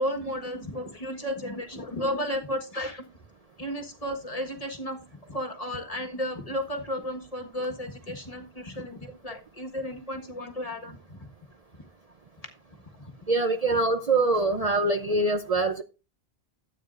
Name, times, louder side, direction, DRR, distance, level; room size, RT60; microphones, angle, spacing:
voice 1, 0.0-3.0 3.6-5.0 5.3-11.3 13.0-13.1, equal, 35° left, 1.6 m, -33 dB
voice 2, 13.3-15.8, right 2 dB, 40° right, 0.7 m, -24 dB
13.0 x 8.9 x 2.5 m
omnidirectional pair, 1.1 m